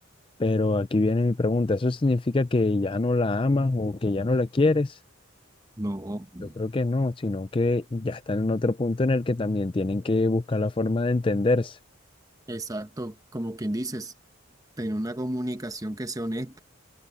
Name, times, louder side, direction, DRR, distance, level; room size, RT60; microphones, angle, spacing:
voice 1, 0.4-5.0 6.6-11.8, left 2 dB, 25° left, 0.4 m, -24 dB
voice 2, 5.8-6.6 12.5-14.1 14.8-16.6, right 1 dB, 15° right, 1.0 m, -32 dB
head